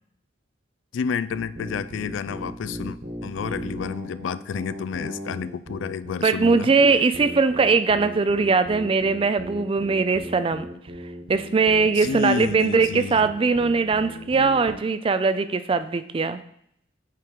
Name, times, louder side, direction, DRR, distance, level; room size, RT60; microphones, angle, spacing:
voice 1, 0.9-6.7 12.0-13.3, left 6 dB, 80° left, 15 dB, 0.3 m, -30 dB
sound 1, 1.3-14.8, equal, 55° right, 1.4 m, -37 dB
voice 2, 6.2-10.7 11.3-16.4, right 4 dB, 30° right, 12 dB, 0.3 m, -21 dB
8.3 x 3.7 x 4.5 m, 0.71 s
head